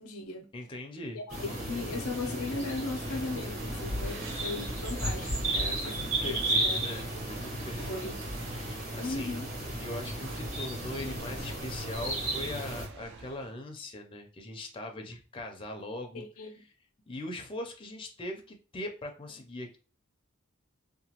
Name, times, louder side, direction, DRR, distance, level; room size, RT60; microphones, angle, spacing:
voice 1, 0.0-0.5 1.3-5.4 5.8-6.0 6.2-6.4 6.6-6.8 7.8-8.2 9.0-9.5 16.1-16.6, left 3 dB, 90° left, 0.5 m, -37 dB
voice 2, 0.5-1.2 5.5-8.1 8.4-9.4 9.8-16.7 17.1-19.8, left 1 dB, 25° left, 0.4 m, -41 dB
sound 1, 1.3-12.9, right 1 dB, 35° right, 1.2 m, -34 dB
sound 2, 2.8-13.5, right 3 dB, 55° right, 0.4 m, -48 dB
2.8 x 2.2 x 2.9 m
head